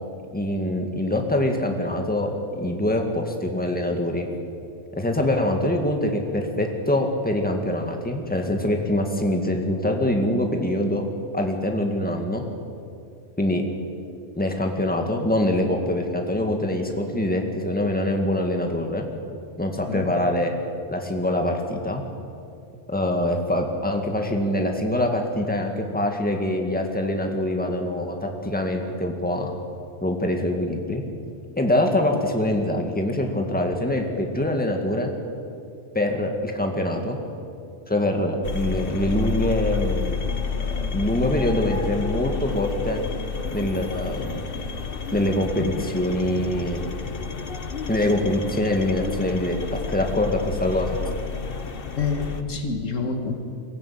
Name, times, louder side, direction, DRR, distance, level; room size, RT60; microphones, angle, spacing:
voice 1, 0.3-4.3 4.9-11.1 11.3-12.4 13.4-13.6 14.3-19.0 19.6-20.5 20.9-22.0 22.9-29.5 30.0-31.0 31.6-35.1 35.9-37.2 37.9-40.2 40.6-43.0 43.5-44.4 45.1-46.8 47.9-50.9, left 1 dB, 5° left, 3 dB, 2.0 m, -24 dB
sound 1, 38.4-52.4, left 5 dB, 50° left, 1.2 m, -30 dB
voice 2, 51.9-53.4, left 4 dB, 80° left, 5 dB, 2.1 m, -27 dB
23.0 x 14.5 x 8.6 m, 2.5 s
omnidirectional pair, 1.3 m